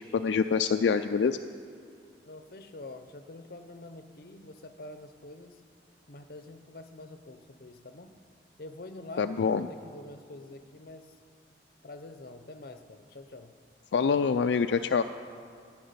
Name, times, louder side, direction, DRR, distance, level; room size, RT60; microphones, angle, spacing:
voice 1, 0.0-1.4 9.2-9.7 13.9-15.0, left 5 dB, 80° left, 8 dB, 0.4 m, -25 dB
voice 2, 2.2-5.6 6.1-8.2 8.6-11.1 11.8-13.6, left 2 dB, 55° left, 9 dB, 0.7 m, -46 dB
14.0 x 6.0 x 9.5 m, 2.3 s
head